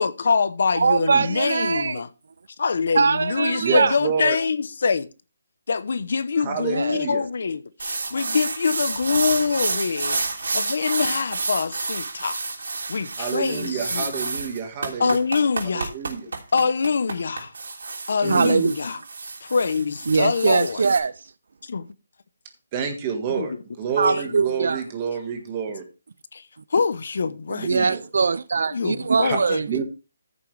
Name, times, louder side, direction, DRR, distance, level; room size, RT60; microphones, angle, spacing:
voice 1, 0.0-2.1 2.6-5.1 5.7-12.4 12.9-14.1 15.0-15.9 16.5-17.5 18.1-19.0 19.4-20.8 21.6-21.9 23.3-23.6 24.1-24.4 26.3-26.4 26.7-27.9 28.7-29.8, left 5 dB, 50° left, 0.9 m, -24 dB
voice 2, 0.7-2.0 2.9-4.0 6.7-7.0 18.3-18.7 20.1-21.1 24.0-24.8 27.6-29.8, right 4 dB, 55° right, 0.4 m, -22 dB
voice 3, 3.6-4.4 6.4-7.2 13.2-15.2 15.7-16.3 18.2-18.5 22.7-25.8 27.5-28.0 29.2-29.4 29.7-29.8, right 6 dB, 15° right, 1.5 m, -28 dB
sound 1, 7.8-21.0, right 3 dB, 70° right, 3.2 m, -30 dB
14.5 x 6.9 x 3.3 m
hypercardioid pair, 180°, 0 cm